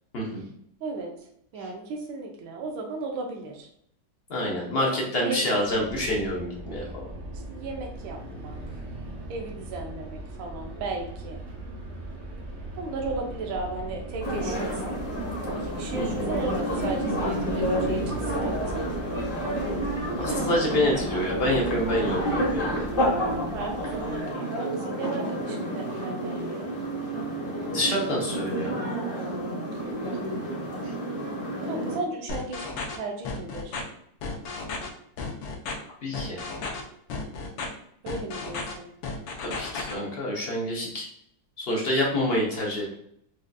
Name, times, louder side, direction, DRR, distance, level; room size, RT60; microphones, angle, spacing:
voice 1, 0.8-1.1 1.5-3.7 5.2-5.5 7.3-8.6 9.3-11.4 12.8-14.9 15.5-18.9 23.5-26.7 29.0-30.0 31.7-33.8 38.0-38.9, right 3 dB, 85° right, 1 dB, 1.4 m, -35 dB
voice 2, 4.3-7.1 15.9-16.3 20.1-22.9 27.7-28.8 36.0-36.4 39.4-41.1 41.6-43.0, left 1 dB, 55° left, -3 dB, 0.6 m, -27 dB
sound 1, 5.6-24.3, right 1 dB, 55° right, 0.8 m, -39 dB
sound 2, 14.2-32.0, equal, 35° left, 1.0 m, -30 dB
sound 3, 32.3-33.0 33.2-33.8 34.2-34.9 35.2-35.7 36.1-36.8 37.1-37.7 38.1-38.7 39.0-39.9, left 4 dB, 75° left, 1.4 m, -33 dB
4.8 x 2.5 x 2.2 m, 0.70 s
omnidirectional pair, 2.1 m